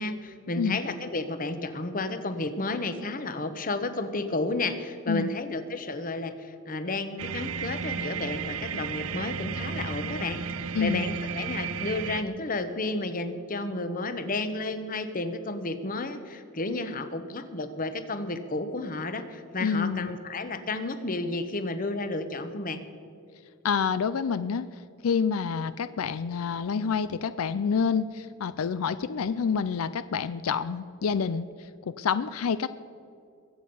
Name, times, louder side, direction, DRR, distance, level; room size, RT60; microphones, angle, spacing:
voice 1, 0.0-10.4 10.8-22.8, left 2 dB, 40° left, 10 dB, 1.0 m, -32 dB
sound 1, 7.2-12.2, right 6 dB, 75° right, 0.6 m, -33 dB
voice 2, 19.6-20.1 23.6-32.7, left 6 dB, 85° left, 14 dB, 0.4 m, -28 dB
22.0 x 8.6 x 5.4 m, 2.5 s
head